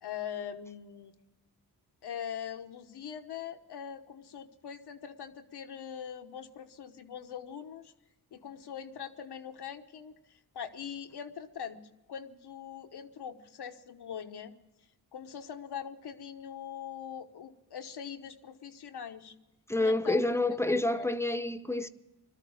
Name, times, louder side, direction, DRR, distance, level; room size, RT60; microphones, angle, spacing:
voice 1, 0.0-1.1 2.0-7.9 8.3-11.8 12.1-14.5 15.1-19.4 19.8-20.3 20.7-21.1, left 8 dB, 85° left, 1.2 m, -42 dB
voice 2, 19.7-21.9, left 2 dB, 5° left, 0.8 m, -28 dB
21.0 x 13.0 x 4.9 m
cardioid pair, 70°, 39 cm